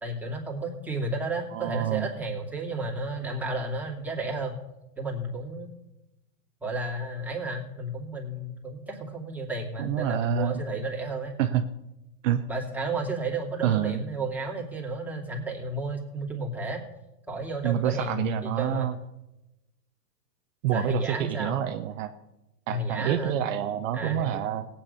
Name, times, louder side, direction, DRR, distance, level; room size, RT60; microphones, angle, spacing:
voice 1, 0.0-4.6 5.0-5.7 6.6-11.3 12.5-16.8 17.3-18.9 20.7-21.6 22.7-23.4 23.9-24.4, right 2 dB, 5° right, -2 dB, 2.7 m, -32 dB
voice 2, 1.5-2.1 9.8-10.6 11.4-11.6 12.2-12.4 13.6-14.0 17.6-18.9 20.6-22.1 22.7-24.7, right 11 dB, 50° right, 7 dB, 1.0 m, -27 dB
17.0 x 9.0 x 5.6 m, 0.96 s
hypercardioid pair, 125°, 48 cm